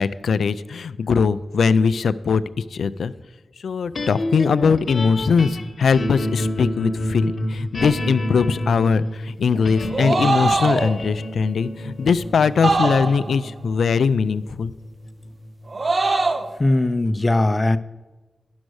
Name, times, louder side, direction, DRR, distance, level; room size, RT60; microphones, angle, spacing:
voice 1, 0.0-3.1 3.6-14.7, left 5 dB, 85° left, 15 dB, 0.3 m, -21 dB
sound 1, 3.9-16.2, left 1 dB, 60° left, 1.0 m, -29 dB
sound 2, 9.9-11.0 12.6-13.4 15.7-16.5, right 3 dB, 50° right, 0.8 m, -21 dB
voice 2, 16.6-17.8, left 2 dB, 30° left, 14 dB, 0.5 m, -19 dB
10.5 x 6.2 x 6.3 m, 1.2 s
cardioid pair, 50°, 0 cm